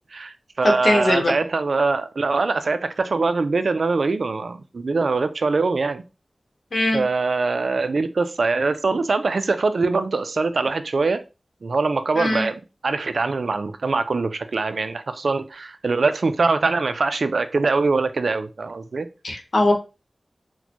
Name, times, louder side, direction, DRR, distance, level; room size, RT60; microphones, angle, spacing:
voice 1, 0.1-6.0 6.9-11.2 11.6-19.1, right 3 dB, 75° right, 0.3 m, -23 dB
voice 2, 0.6-1.3 6.7-7.1 12.1-12.5 19.2-19.7, left 1 dB, 60° left, 0.8 m, -20 dB
4.1 x 2.1 x 2.9 m
wide cardioid pair, 90°, 0 cm